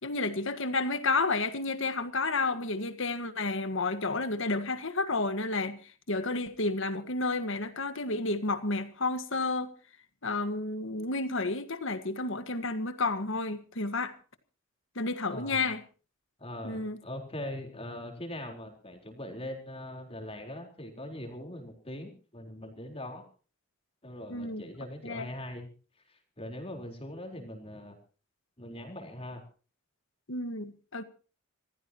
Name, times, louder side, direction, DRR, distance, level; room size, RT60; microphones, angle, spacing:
voice 1, 0.0-9.7 10.2-14.1 14.9-15.8 16.6-17.0 24.3-24.6 25.0-25.3 30.3-31.0, left 3 dB, 65° left, 1.7 m, -31 dB
voice 2, 15.3-15.7 16.4-23.2 24.0-25.7 26.1-28.0 28.6-29.4, left 1 dB, 30° left, 4.2 m, -41 dB
26.5 x 15.5 x 3.0 m
head